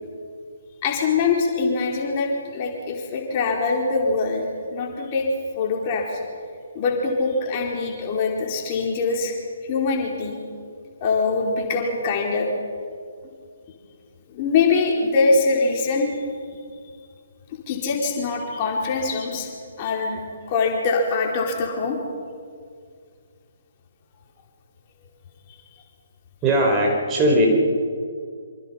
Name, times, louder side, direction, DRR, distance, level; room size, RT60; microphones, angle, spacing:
voice 1, 0.8-4.4 4.7-5.3 5.6-6.2 6.7-9.4 9.7-10.4 11.0-12.5 14.3-16.1 17.7-19.5 19.8-20.2 20.5-22.0, left 4 dB, 30° left, 0 dB, 4.3 m, -23 dB
voice 2, 26.4-27.5, right 1 dB, 20° right, 0 dB, 4.8 m, -19 dB
26.5 x 25.5 x 5.8 m, 2.2 s
figure-of-eight pair, 135°, 0 cm